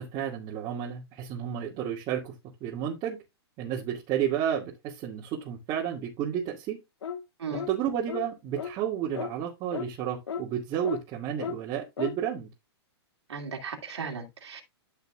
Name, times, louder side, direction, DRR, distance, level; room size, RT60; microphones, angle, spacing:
voice 1, 0.0-2.3 2.6-3.2 3.6-6.8 7.7-12.5, right 9 dB, 30° right, 2.1 m, -31 dB
sound 1, 7.0-7.2 7.5-7.7 8.1-8.3 8.6-8.7 9.1-9.3 9.7-9.9 10.3-10.4 10.8-11.0 11.4-11.6 12.0-12.2, left 7 dB, 80° left, 1.0 m, -34 dB
voice 2, 13.3-14.6, right 5 dB, 80° right, 2.5 m, -36 dB
12.5 x 5.7 x 2.4 m
hypercardioid pair, 125°, 14 cm